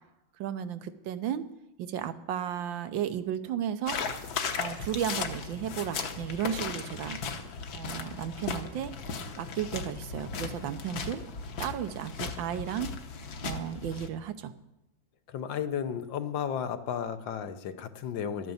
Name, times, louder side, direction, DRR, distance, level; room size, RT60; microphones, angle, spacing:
voice 1, 0.4-1.5 1.8-4.0 4.6-7.2 7.7-8.9 9.4-11.2 11.6-12.9 13.4-14.5, right 9 dB, 85° right, 11 dB, 1.5 m, -34 dB
sound 1, 3.9-14.1, left 5 dB, 60° left, 1.4 m, -36 dB
voice 2, 15.3-18.5, left 8 dB, 75° left, 9 dB, 1.6 m, -33 dB
12.0 x 9.2 x 7.1 m, 0.94 s
omnidirectional pair, 2.0 m